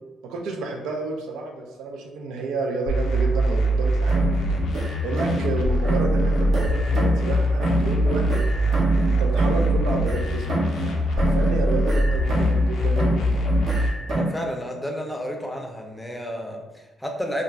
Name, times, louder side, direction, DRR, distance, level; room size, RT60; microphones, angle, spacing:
voice 1, 0.3-4.3 5.0-8.5 9.1-13.5, right 3 dB, 90° right, 1 dB, 0.3 m, -30 dB
sound 1, 2.9-13.9, equal, 65° left, 0.5 m, -22 dB
sound 2, 4.1-5.6 5.8-7.3 7.6-10.9 11.2-12.7 13.0-14.4, right 2 dB, 65° right, 0.7 m, -27 dB
voice 2, 14.1-17.4, equal, 5° left, 2 dB, 0.5 m, -31 dB
2.4 x 2.0 x 3.3 m, 1.1 s
cardioid pair, 90°, 0 cm